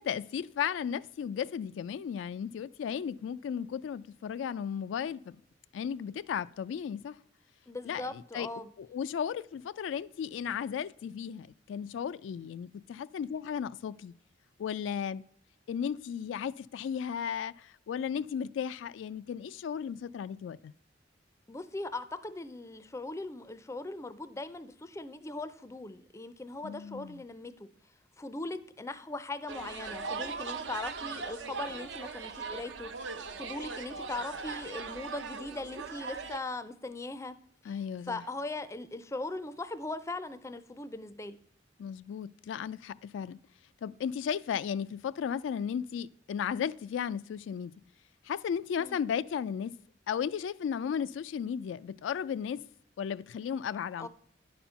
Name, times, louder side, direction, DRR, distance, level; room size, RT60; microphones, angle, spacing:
voice 1, 0.0-5.4 5.7-7.2 7.9-8.5 8.8-14.1 14.6-15.2 15.7-20.7 26.6-27.2 37.7-38.2 41.8-43.4 43.8-47.7 48.2-49.7 50.1-52.6 53.0-54.1, left 7 dB, 85° left, 0.3 m, -35 dB
voice 2, 7.7-8.7 21.5-27.7 28.2-37.4 37.7-41.4 48.8-49.0 54.0-54.1, left 2 dB, 15° left, 0.4 m, -40 dB
sound 1, 29.5-36.4, right 5 dB, 80° right, 0.8 m, -39 dB
10.0 x 4.3 x 5.5 m
head